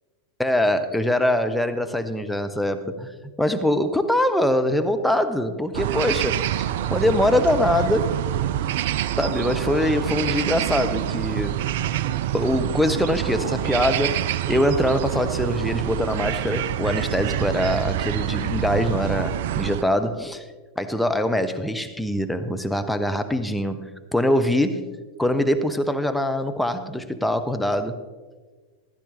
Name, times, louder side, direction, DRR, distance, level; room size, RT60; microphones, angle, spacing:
voice 1, 0.4-3.1 3.4-8.2 9.2-11.6 12.3-20.5 20.8-24.9 25.2-28.0, left 1 dB, ahead, 7 dB, 0.7 m, -23 dB
sound 1, 5.7-19.8, right 12 dB, 55° right, 0.4 m, -26 dB
15.0 x 11.5 x 3.3 m, 1.4 s
figure-of-eight pair, 90°, 0 cm